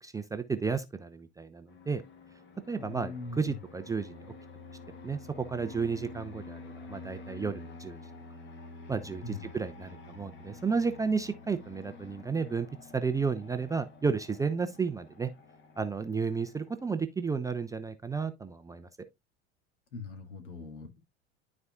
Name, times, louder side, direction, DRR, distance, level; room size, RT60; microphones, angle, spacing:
voice 1, 0.0-2.0 2.7-4.3 5.0-8.0 8.9-12.7 12.9-15.3 15.8-18.9, right 5 dB, 10° right, 0.5 m, -32 dB
Fixed-wing aircraft airplane, 1.7-16.9, left 3 dB, 30° left, 1.5 m, -49 dB
voice 2, 2.8-3.6 9.2-9.5 19.9-21.0, left 4 dB, 70° left, 2.1 m, -41 dB
12.5 x 4.2 x 2.3 m
figure-of-eight pair, 75°, 35 cm